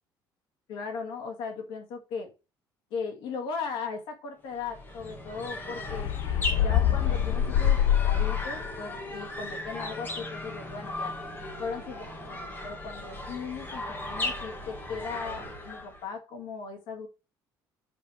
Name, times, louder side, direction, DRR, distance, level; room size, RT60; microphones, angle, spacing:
voice 1, 0.7-2.3 2.9-6.1 6.6-11.2 11.6-17.1, left 5 dB, 85° left, 1.9 m, -37 dB
sound 1, 4.5-16.1, left 1 dB, 25° left, 1.9 m, -37 dB
sound 2, 5.9-8.7, left 10 dB, 65° left, 0.5 m, -25 dB
7.1 x 5.5 x 3.2 m
cardioid pair, 135°, 8 cm